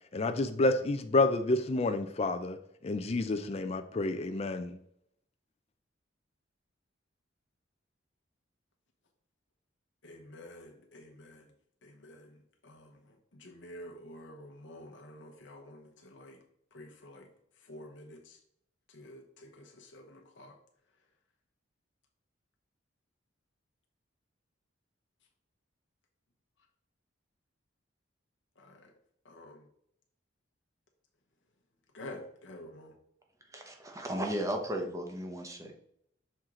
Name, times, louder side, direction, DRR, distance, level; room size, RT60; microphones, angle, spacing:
voice 1, 0.1-2.6 2.8-4.8, left 2 dB, 30° left, 7 dB, 0.4 m, -29 dB
voice 2, 10.0-11.5 11.8-16.4 16.7-17.3 17.6-18.4 18.9-20.6 28.6-28.9 29.2-29.7 31.9-33.0, left 1 dB, 65° left, 2 dB, 0.9 m, -50 dB
voice 3, 33.5-35.7, equal, 15° right, 3 dB, 0.9 m, -35 dB
6.4 x 4.5 x 3.7 m, 0.71 s
head